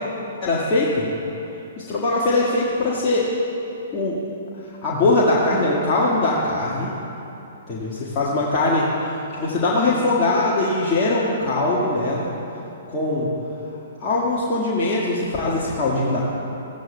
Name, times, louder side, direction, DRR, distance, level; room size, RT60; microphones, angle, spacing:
voice 1, 0.4-1.0 1.9-3.3 3.9-4.2 4.8-6.9 7.7-12.3 12.9-13.3 14.0-16.2, left 2 dB, 25° left, -8 dB, 1.6 m, -21 dB
16.0 x 12.5 x 2.2 m, 2.9 s
figure-of-eight pair, 115°, 0 cm